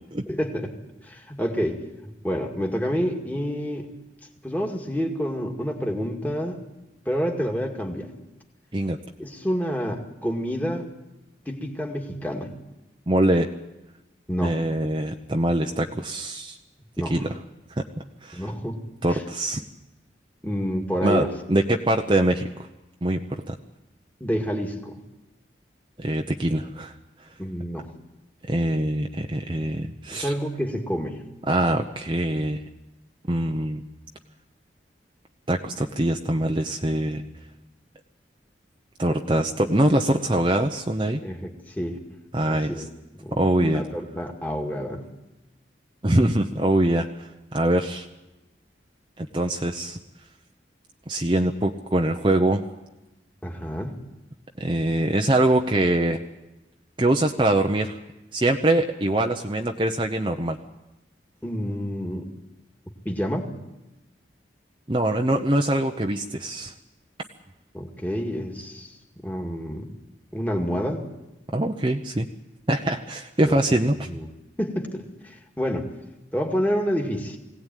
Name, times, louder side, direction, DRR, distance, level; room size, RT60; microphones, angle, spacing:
voice 1, 0.3-0.7 1.0-1.8 2.2-3.9 4.4-6.6 7.1-8.1 9.2-10.9 11.5-12.5 14.3-14.6 17.0-17.2 18.3-18.8 19.1-19.2 20.4-21.3 24.2-25.0 27.4-27.9 30.1-31.2 41.2-42.0 42.5-42.9 43.2-45.0 53.4-54.0 61.4-62.3 63.1-63.5 67.7-68.9 69.2-69.9 70.3-71.1 73.4-73.6 74.1-74.3 74.6-75.9 76.3-77.4, equal, 10° left, 1 dB, 2.1 m, -28 dB
voice 2, 13.1-13.5 14.4-16.6 17.1-17.4 17.8-17.9 18.2-18.5 19.0-19.6 21.0-22.5 23.0-23.6 26.0-26.9 28.5-30.3 31.5-32.6 33.3-33.8 35.5-37.2 39.0-41.2 42.3-42.7 43.3-43.8 46.0-48.1 49.2-50.0 51.1-52.6 54.6-56.2 57.0-58.0 58.3-60.6 64.9-66.7 71.5-72.3 72.7-74.1, right 1 dB, 25° right, 3 dB, 0.8 m, -23 dB
22.0 x 17.5 x 9.2 m, 1.0 s
head